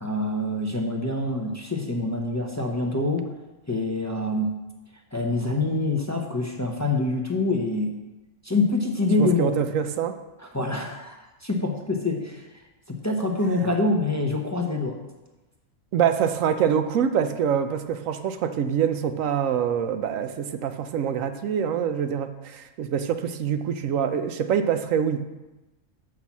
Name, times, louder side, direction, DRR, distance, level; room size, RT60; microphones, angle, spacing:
voice 1, 0.0-3.2 3.7-4.5 5.1-7.9 8.4-9.5 10.4-11.2 11.4-12.4 12.9-15.0, left 2 dB, 15° left, 1 dB, 0.8 m, -25 dB
voice 2, 9.2-10.2 15.9-25.2, right 8 dB, 85° right, 9 dB, 1.0 m, -25 dB
6.1 x 5.8 x 7.2 m, 1.0 s
omnidirectional pair, 1.3 m